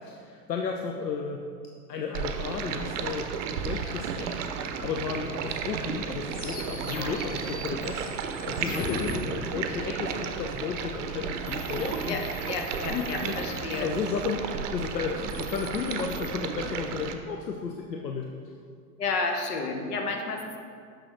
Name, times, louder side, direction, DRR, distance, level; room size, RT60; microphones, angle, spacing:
voice 1, 0.0-1.4 1.9-4.4 4.8-8.0 8.5-12.2 12.9-18.3, left 5 dB, 85° left, 2 dB, 0.6 m, -33 dB
Stream, 2.1-17.1, right 6 dB, 50° right, 0.6 m, -33 dB
sound 1, 6.3-9.2 11.5-14.3 15.1-16.3, left 3 dB, 20° left, 0.7 m, -41 dB
voice 2, 8.6-9.1 12.1-13.9 19.0-20.6, left 4 dB, 70° left, 3 dB, 1.0 m, -32 dB
6.2 x 6.1 x 3.2 m, 2.3 s
figure-of-eight pair, 85°, 48 cm